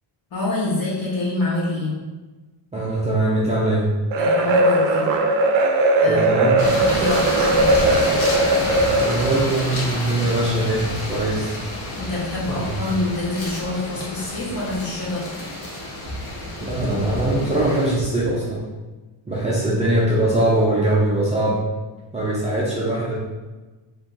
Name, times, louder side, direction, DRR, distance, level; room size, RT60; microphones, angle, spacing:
voice 1, 0.3-1.9 4.2-5.1 6.0-6.2 6.6-8.1 12.0-15.3, left 2 dB, 45° left, -6 dB, 1.2 m, -26 dB
voice 2, 2.7-3.9 6.1-6.6 9.0-11.6 12.8-12.9 16.6-18.7 19.3-21.6 22.1-23.1, right 1 dB, 15° right, -8 dB, 0.3 m, -21 dB
sound 1, 4.1-9.5, right 2 dB, 65° right, 0.5 m, -19 dB
sound 2, 6.6-17.9, left 1 dB, 70° left, 1.1 m, -29 dB
3.0 x 2.7 x 3.5 m, 1.2 s
wide cardioid pair, 175°, 49 cm